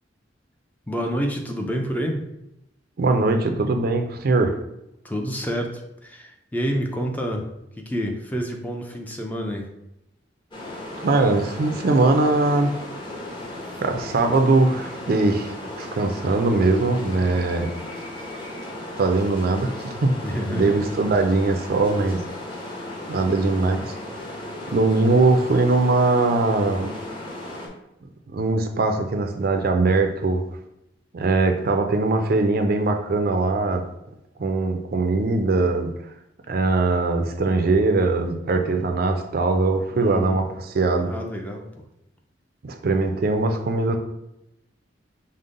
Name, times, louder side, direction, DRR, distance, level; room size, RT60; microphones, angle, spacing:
voice 1, 0.9-2.3 5.0-7.4 7.8-9.7 20.2-20.8 39.9-40.4 41.0-41.7, equal, 10° left, 2 dB, 0.4 m, -28 dB
voice 2, 3.0-4.5 11.0-12.8 13.8-17.7 19.0-20.1 20.5-22.2 23.1-23.9 24.7-26.9 28.3-30.4 31.1-33.8 34.4-35.9 36.5-41.1 42.6-44.0, right 3 dB, 55° right, 5 dB, 0.4 m, -21 dB
sound 1, 10.5-27.7, left 1 dB, 25° left, 0.8 m, -36 dB
5.3 x 2.1 x 3.7 m, 0.85 s
head